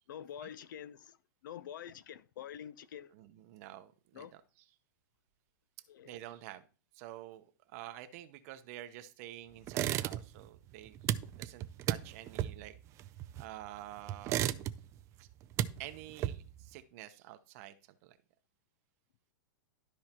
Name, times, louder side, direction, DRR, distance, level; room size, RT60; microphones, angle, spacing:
voice 1, 0.1-1.2 1.4-3.1 4.1-4.3 5.9-6.2, left 9 dB, 70° left, 0.6 m, -46 dB
voice 2, 3.1-4.3 6.0-6.6 6.9-11.0 11.3-12.7 13.4-14.6 15.2-15.3 15.8-17.8 18.0-18.2, right 13 dB, 45° right, 0.8 m, -48 dB
sound 1, 9.7-10.5 10.7-13.7 14.1-15.0 15.3-16.7, right 12 dB, 25° right, 0.4 m, -35 dB
12.5 x 4.7 x 2.9 m
hypercardioid pair, 140°, 11 cm